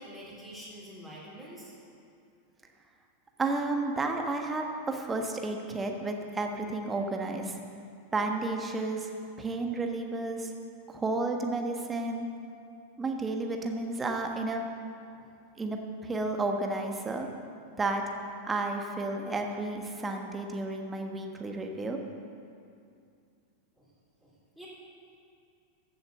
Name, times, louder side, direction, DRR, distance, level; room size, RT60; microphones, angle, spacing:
voice 1, 0.0-1.8 15.1-15.3 23.8-23.9 24.2-24.7, equal, ahead, -8 dB, 3.8 m, -47 dB
voice 2, 3.4-7.5 8.1-9.1 9.4-10.5 10.9-12.3 13.0-14.6 15.6-17.3 17.8-18.0 18.4-22.0, right 2 dB, 15° right, 3 dB, 1.4 m, -32 dB
15.0 x 7.3 x 6.8 m, 2.5 s
figure-of-eight pair, 90°, 0 cm